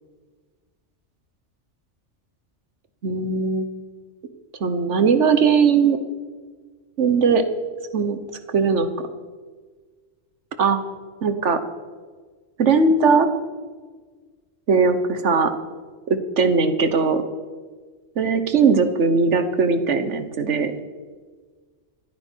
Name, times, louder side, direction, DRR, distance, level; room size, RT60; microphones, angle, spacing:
voice 1, 3.0-3.7 4.6-6.0 7.0-7.4 7.9-8.2 8.5-9.1 10.6-10.8 11.2-11.6 12.6-13.3 14.7-15.5 16.1-17.2 18.2-20.7, right 5 dB, 70° right, 9 dB, 1.5 m, -19 dB
26.5 x 9.4 x 4.6 m, 1.5 s
omnidirectional pair, 1.3 m